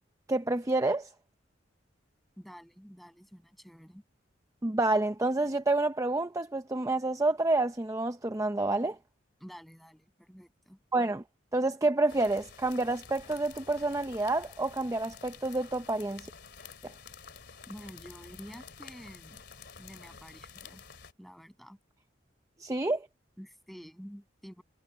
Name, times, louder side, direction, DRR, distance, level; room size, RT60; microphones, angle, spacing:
voice 1, 0.3-1.1 4.6-9.0 10.9-11.2 11.5-16.3 22.6-23.1, right 2 dB, 15° right, 0.6 m, -28 dB
voice 2, 2.4-4.0 9.4-10.8 17.7-19.4 19.8-20.8 21.2-21.8 23.4-24.6, equal, ahead, 7.0 m, -49 dB
sound 1, 12.1-21.1, left 6 dB, 60° left, 3.2 m, -50 dB
head